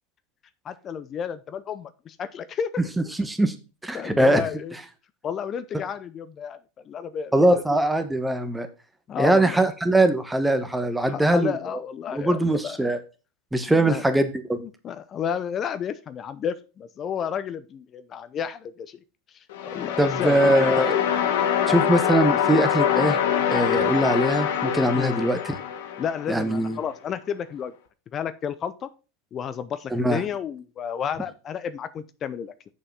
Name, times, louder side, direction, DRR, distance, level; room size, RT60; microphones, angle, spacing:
voice 1, 0.6-2.7 3.9-4.7 5.2-6.6 6.9-7.6 9.1-9.6 11.0-12.8 13.7-14.0 14.5-19.0 19.3-20.8 24.9-25.2 26.0-27.7 28.1-28.9 29.3-32.5, left 8 dB, 35° left, 14 dB, 0.7 m, -32 dB
voice 2, 3.1-3.5 3.8-4.4 7.3-8.7 9.2-11.5 12.1-13.0 13.5-14.6 20.0-21.0 21.7-23.2 23.5-25.5 26.3-26.8 29.9-30.2, right 1 dB, 5° right, 9 dB, 1.3 m, -22 dB
sound 1, 19.5-26.5, left 9 dB, 70° left, 1.5 m, -24 dB
7.0 x 5.5 x 5.5 m, 0.32 s
hypercardioid pair, 95°, 0 cm